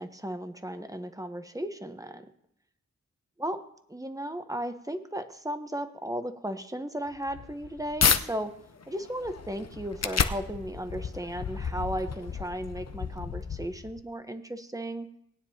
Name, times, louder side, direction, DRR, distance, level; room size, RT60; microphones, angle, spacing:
voice 1, 0.0-2.3 3.4-3.6 3.9-8.5 8.9-15.1, right 1 dB, 10° right, 8 dB, 0.9 m, -35 dB
sound 1, 7.1-8.2 8.7-14.0, left 6 dB, 60° left, 0.7 m, -31 dB
19.0 x 9.7 x 2.8 m, 0.72 s
wide cardioid pair, 75°, 30 cm